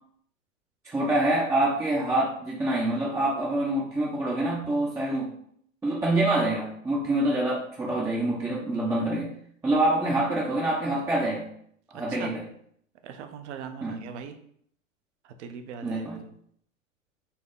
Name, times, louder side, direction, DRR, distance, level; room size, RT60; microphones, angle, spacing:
voice 1, 0.8-5.3 5.8-9.3 9.6-11.5 11.9-12.4 13.8-14.0 15.8-16.2, right 1 dB, 5° right, -5 dB, 0.5 m, -26 dB
voice 2, 13.0-14.4 15.4-16.3, right 7 dB, 60° right, 8 dB, 0.7 m, -40 dB
4.2 x 2.8 x 3.8 m, 0.66 s
hypercardioid pair, 110°, 39 cm